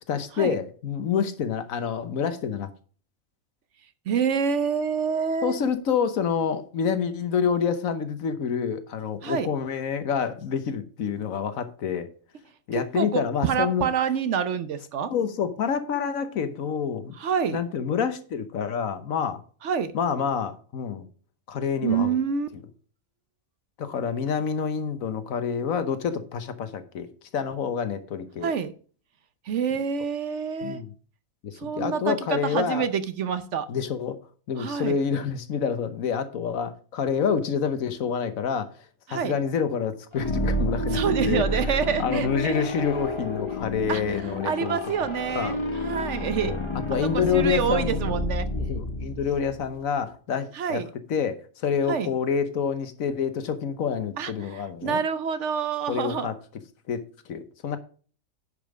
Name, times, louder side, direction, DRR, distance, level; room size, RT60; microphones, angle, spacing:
voice 1, 0.1-2.7 5.4-12.1 12.7-13.9 15.1-17.1 17.5-19.4 19.9-21.1 21.5-22.2 22.5-22.6 23.8-27.1 27.3-28.5 30.6-30.9 31.4-32.9 33.7-34.2 34.5-38.7 39.1-41.6 42.0-44.8 45.3-45.6 46.4-46.6 46.9-48.2 48.5-50.8 51.1-55.0 55.9-56.4 56.9-57.8, left 7 dB, 80° left, 1.3 m, -27 dB
voice 2, 4.1-5.6 9.2-9.5 12.9-15.1 17.2-17.6 19.6-19.9 21.8-22.5 28.4-28.7 29.5-30.8 31.6-33.7 34.6-35.0 39.1-39.4 40.9-42.6 43.9-44.0 44.4-46.5 47.0-48.5 50.5-50.9 51.9-52.1 54.2-56.3, right 7 dB, 60° right, 1.0 m, -27 dB
sound 1, 40.1-49.9, equal, 25° left, 1.1 m, -30 dB
10.0 x 5.3 x 4.9 m
omnidirectional pair, 1.4 m